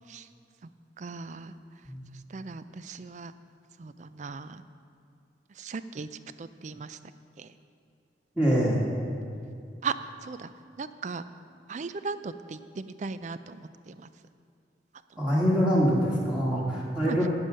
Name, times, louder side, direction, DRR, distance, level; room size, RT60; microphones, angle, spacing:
voice 1, 1.0-1.5 2.3-3.3 3.8-4.6 5.6-6.1 6.4-7.0 7.4-7.5 9.8-9.9 10.2-10.5 10.8-11.2 11.7-14.1 17.0-17.2, right 4 dB, 40° right, 13 dB, 0.4 m, -37 dB
voice 2, 8.4-8.8 15.2-17.3, equal, 5° right, -6 dB, 1.8 m, -24 dB
10.0 x 9.0 x 6.4 m, 2.4 s
head